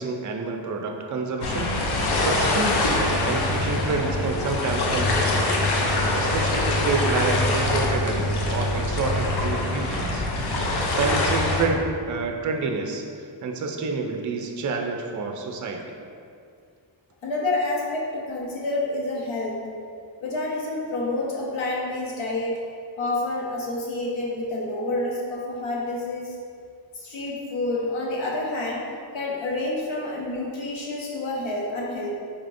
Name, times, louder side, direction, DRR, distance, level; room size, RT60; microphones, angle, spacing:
voice 1, 0.0-5.6 6.1-10.7 11.0-16.0, right 3 dB, 40° right, 3 dB, 0.5 m, -29 dB
sound 1, 1.4-11.7, left 2 dB, 55° left, 0.7 m, -24 dB
voice 2, 17.2-19.6 20.2-22.6 23.0-26.3 26.9-28.8 29.1-32.1, left 2 dB, 85° left, -3 dB, 1.1 m, -28 dB
4.8 x 4.2 x 2.6 m, 2.3 s
wide cardioid pair, 150°, 46 cm